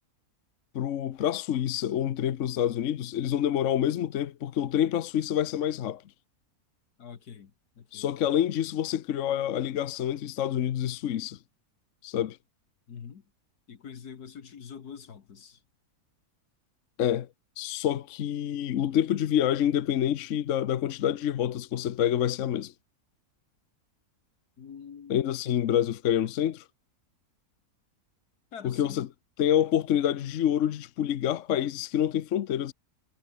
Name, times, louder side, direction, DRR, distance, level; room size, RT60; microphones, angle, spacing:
voice 1, 0.7-6.0 7.9-11.4 12.0-12.4 17.0-17.3 17.6-22.7 25.1-26.6 28.6-29.1 29.4-32.7, left 10 dB, 60° left, 1.0 m, -27 dB
voice 2, 7.0-8.1 12.9-13.2 13.7-15.6 24.6-25.3 28.5-29.0, left 7 dB, 80° left, 2.1 m, -45 dB
omnidirectional pair, 1.6 m